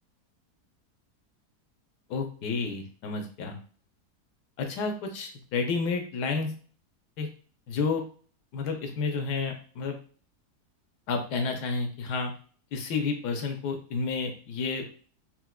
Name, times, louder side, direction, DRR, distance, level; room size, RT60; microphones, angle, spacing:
voice 1, 2.1-3.6 4.6-6.5 7.2-7.3 7.7-8.0 8.5-9.9 11.1-12.3 12.7-14.8, left 4 dB, 90° left, 4 dB, 1.3 m, -30 dB
4.4 x 2.1 x 2.3 m, 0.42 s
omnidirectional pair, 1.7 m